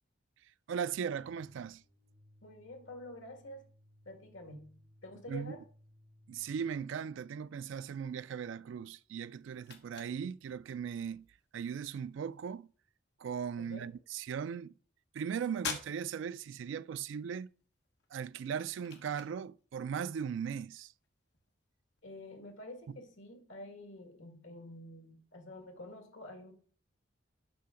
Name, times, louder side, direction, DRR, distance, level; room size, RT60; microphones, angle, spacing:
voice 1, 0.4-1.8 5.3-5.6 6.3-11.3 11.5-12.7 13.2-14.7 15.1-17.5 18.1-20.9 22.9-23.0, right 7 dB, 75° right, 0.3 m, -38 dB
sound 1, 1.1-6.7, left 1 dB, 55° right, 2.3 m, -63 dB
voice 2, 2.4-3.7 4.1-4.7 5.0-5.6 13.6-13.9 22.0-26.5, left 1 dB, 85° left, 2.0 m, -48 dB
sound 2, 8.8-23.3, left 5 dB, 60° left, 1.2 m, -51 dB
8.4 x 5.7 x 3.7 m
head